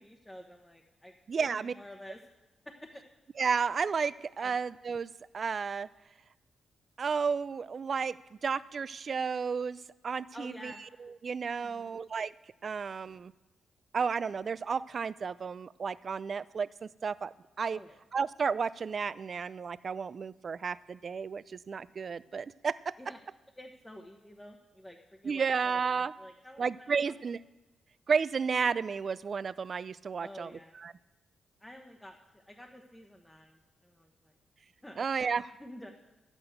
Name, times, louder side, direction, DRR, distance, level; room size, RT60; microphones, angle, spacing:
voice 1, 0.0-2.2 2.6-3.0 4.4-4.5 10.3-10.8 11.6-12.0 17.7-18.0 23.0-23.2 23.6-27.1 30.2-30.8 31.6-34.3 34.8-35.1 35.6-35.9, left 1 dB, 10° left, 0 dB, 1.1 m, -50 dB
voice 2, 1.3-1.7 3.4-5.9 7.0-10.7 11.0-12.3 12.6-13.3 13.9-17.8 18.1-22.9 25.2-26.1 26.6-27.4 28.1-30.5 30.8-30.9 35.0-35.5, right 5 dB, 50° right, 18 dB, 0.4 m, -32 dB
10.5 x 8.0 x 7.7 m, 1.0 s
cardioid pair, 90°, 0 cm